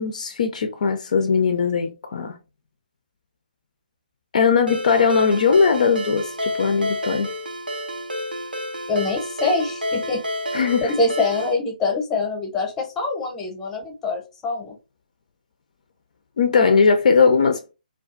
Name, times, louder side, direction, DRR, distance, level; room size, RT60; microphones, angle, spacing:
voice 1, 0.0-2.4 4.3-7.3 10.5-10.9 16.4-17.6, left 5 dB, 50° left, 0.4 m, -19 dB
Ringtone, 4.7-11.5, equal, 90° right, 0.5 m, -30 dB
voice 2, 8.9-10.2 10.8-14.7, left 3 dB, 10° left, 0.7 m, -24 dB
2.3 x 2.3 x 2.4 m
figure-of-eight pair, 145°, 5 cm